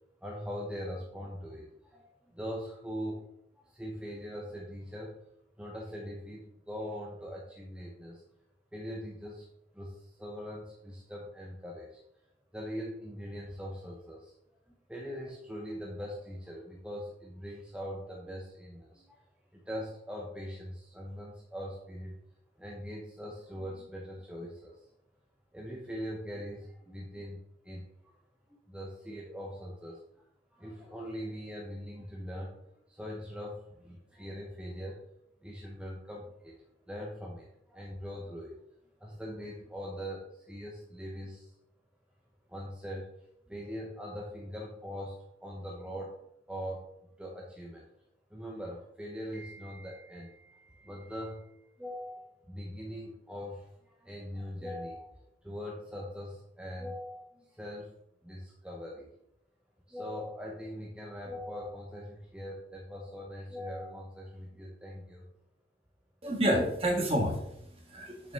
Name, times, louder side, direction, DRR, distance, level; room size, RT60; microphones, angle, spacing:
voice 1, 0.2-3.3 3.6-5.2 5.6-8.2 8.7-9.5 9.7-12.0 12.5-14.3 14.7-19.2 19.5-22.2 22.6-24.9 25.5-28.2 28.5-30.3 30.5-35.0 35.4-36.6 36.9-38.7 39.0-41.5 42.5-43.1 43.5-46.2 46.5-46.8 47.2-47.9 48.3-51.5 51.8-55.1 55.4-57.9 58.2-59.1 59.9-65.3, equal, 5° right, -2 dB, 0.7 m, -41 dB
voice 2, 66.2-68.3, equal, 35° right, 1 dB, 1.5 m, -29 dB
6.7 x 6.0 x 3.3 m, 0.77 s
head